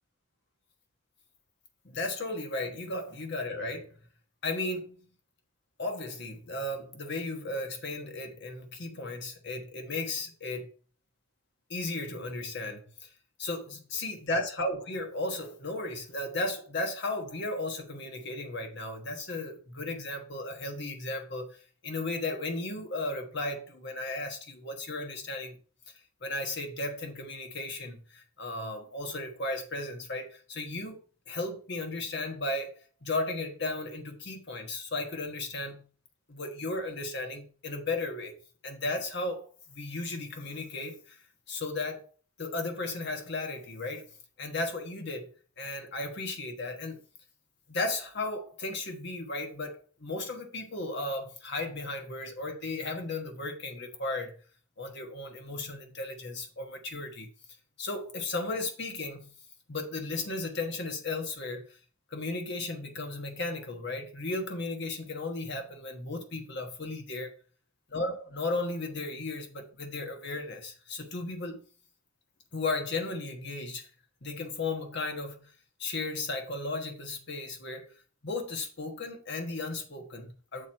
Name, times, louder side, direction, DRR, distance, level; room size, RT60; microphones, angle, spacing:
voice 1, 1.8-3.9 4.4-5.0 5.8-10.7 11.7-13.1 13.4-13.6 13.9-25.6 26.2-31.0 31.3-35.8 36.3-38.4 38.6-41.2 41.5-42.0 42.4-44.1 44.4-47.0 47.7-54.3 54.8-57.3 57.8-59.3 59.7-61.8 62.1-67.3 67.9-71.6 72.5-73.9 74.2-75.5 75.8-77.9 78.2-80.7, left 2 dB, 50° left, 1.3 m, -35 dB
7.0 x 4.5 x 4.5 m
head